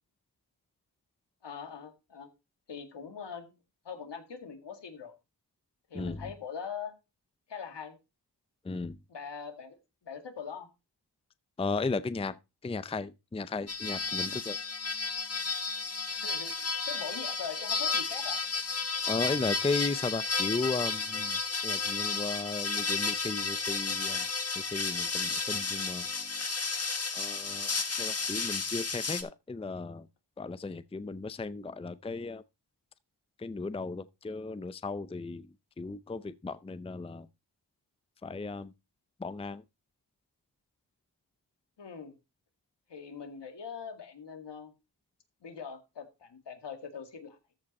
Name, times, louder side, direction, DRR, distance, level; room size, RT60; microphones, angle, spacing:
voice 1, 1.4-2.3 2.7-3.5 3.8-5.2 5.9-6.9 7.5-8.0 9.1-9.8 10.0-10.7 16.1-18.4 41.8-42.1 42.9-44.7 45.4-47.4, left 6 dB, 75° left, 2.1 m, -42 dB
voice 2, 8.6-9.0 11.6-12.4 12.6-14.6 19.1-24.3 24.6-26.3 27.1-30.1 30.4-32.4 33.4-35.5 35.8-37.3 38.2-38.7 39.2-39.6, left 3 dB, 15° left, 0.5 m, -35 dB
sound 1, 13.7-29.2, left 4 dB, 35° left, 1.6 m, -32 dB
13.5 x 5.1 x 4.2 m
cardioid pair, 70°, 42 cm